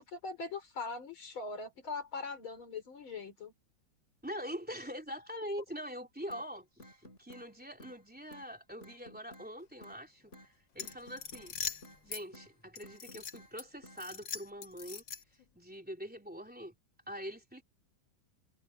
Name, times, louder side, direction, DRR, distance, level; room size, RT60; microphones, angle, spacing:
voice 1, 0.0-3.5, left 4 dB, 85° left, 4.8 m, -41 dB
voice 2, 4.2-11.5 12.0-15.0 15.5-16.7 17.1-17.6, equal, 5° right, 3.3 m, -44 dB
sound 1, 6.3-6.5 6.8-7.5 7.8-8.0 8.3-8.5 8.8-9.5 9.8-10.0 10.3-10.5 10.8-11.5 11.8-12.0 12.3-12.5 12.8-13.5 13.8-14.0, left 1 dB, 35° left, 5.2 m, -54 dB
sound 2, 10.7-12.2 12.8-13.6 14.0-15.4, left 7 dB, 65° left, 2.3 m, -42 dB
omnidirectional pair, 2.2 m